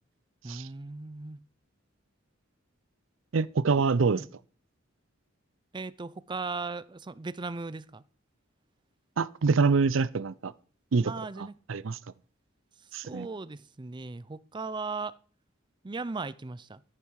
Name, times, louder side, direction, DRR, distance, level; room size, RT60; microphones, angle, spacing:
voice 1, 0.4-1.4 3.8-3.9 4.1-4.3 5.7-8.0 11.0-11.6 13.0-15.2 15.8-16.8, right 3 dB, 25° right, 0.5 m, -37 dB
voice 2, 3.3-4.2 9.2-10.5 10.9-11.1 11.7-12.0 12.9-13.3, right 4 dB, 70° right, 0.5 m, -25 dB
14.0 x 9.0 x 4.8 m
head